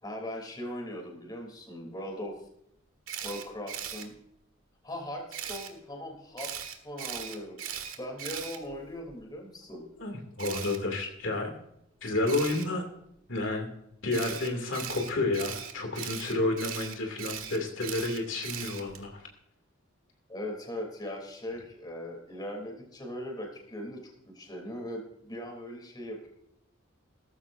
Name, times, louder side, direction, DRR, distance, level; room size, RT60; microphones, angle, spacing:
voice 1, 0.0-2.4 3.2-4.1 4.8-9.8 20.3-26.3, left 1 dB, 20° left, 2 dB, 3.2 m, -39 dB
Camera, 3.1-4.0 5.3-5.7 6.4-9.1 10.4-10.8 12.3-12.6 14.1-19.0, right 9 dB, 80° right, 1.7 m, -39 dB
voice 2, 10.0-11.5 12.0-12.8 13.3-13.7 14.0-19.3, left 2 dB, 65° left, 2 dB, 2.6 m, -30 dB
17.5 x 14.0 x 2.6 m, 0.76 s
head